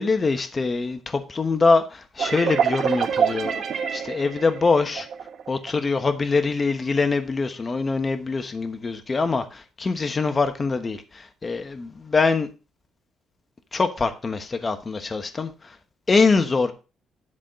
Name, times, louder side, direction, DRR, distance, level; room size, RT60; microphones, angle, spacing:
voice 1, 0.0-5.1 5.5-12.5 13.7-15.8 16.1-16.7, left 4 dB, 30° left, 1.2 m, -24 dB
sound 1, 2.2-5.7, right 7 dB, 65° right, 1.4 m, -26 dB
11.0 x 4.3 x 5.3 m
cardioid pair, 90°, 0 cm